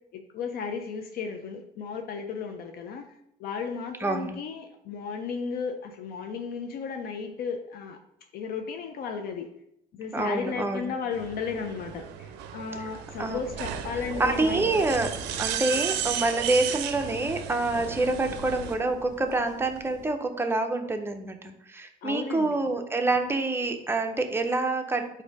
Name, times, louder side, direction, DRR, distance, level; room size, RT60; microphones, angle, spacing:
voice 1, 0.3-3.1 3.4-8.0 8.3-9.5 9.9-14.8 22.0-22.6, left 5 dB, 65° left, 5 dB, 0.5 m, -34 dB
voice 2, 4.0-4.3 10.1-10.9 12.7-12.9 13.2-13.4 14.2-15.1 15.4-25.1, right 2 dB, 15° right, 5 dB, 0.5 m, -27 dB
sound 1, 11.1-18.7, right 9 dB, 90° right, 0.4 m, -34 dB
sound 2, 13.1-20.1, equal, 50° left, 1.2 m, -45 dB
4.2 x 2.6 x 4.7 m, 0.79 s
cardioid pair, 110°, 17 cm